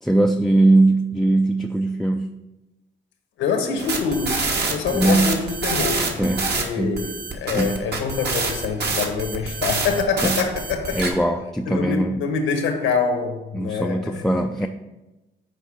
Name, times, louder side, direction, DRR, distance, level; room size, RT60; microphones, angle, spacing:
voice 1, 0.0-2.3 4.9-5.3 6.2-6.5 6.8-7.0 7.5-7.8 10.2-10.4 10.9-12.2 13.5-14.7, right 2 dB, ahead, 4 dB, 0.4 m, -20 dB
voice 2, 3.4-11.0 11.7-14.3, left 5 dB, 85° left, 5 dB, 1.3 m, -25 dB
sound 1, 3.8-6.6 7.0-11.1, right 4 dB, 55° right, 1.5 m, -26 dB
6.9 x 4.6 x 5.9 m, 1.0 s
cardioid pair, 90°, 20 cm